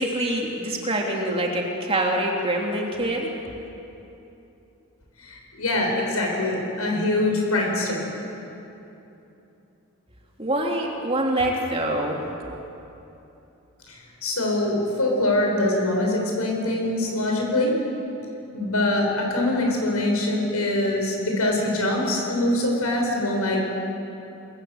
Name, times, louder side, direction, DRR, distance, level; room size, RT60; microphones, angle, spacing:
voice 1, 0.0-3.3 10.4-12.2, right 1 dB, 25° right, -1 dB, 3.1 m, -25 dB
voice 2, 5.2-8.1 13.9-17.8 18.5-23.6, left 1 dB, 80° left, 0 dB, 6.8 m, -24 dB
28.5 x 20.5 x 8.0 m, 2.9 s
head